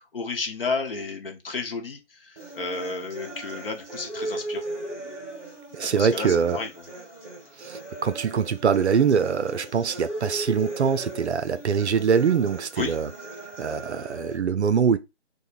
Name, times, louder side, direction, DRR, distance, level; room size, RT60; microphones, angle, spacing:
voice 1, 0.0-4.6 5.8-6.9 12.8-12.9, left 4 dB, 50° left, 0.8 m, -32 dB
sound 1, 2.4-14.4, right 2 dB, 15° right, 1.2 m, -38 dB
voice 2, 5.7-6.6 7.6-13.1 13.6-15.0, right 6 dB, 70° right, 0.5 m, -23 dB
4.7 x 2.1 x 2.4 m
figure-of-eight pair, 160°, 35 cm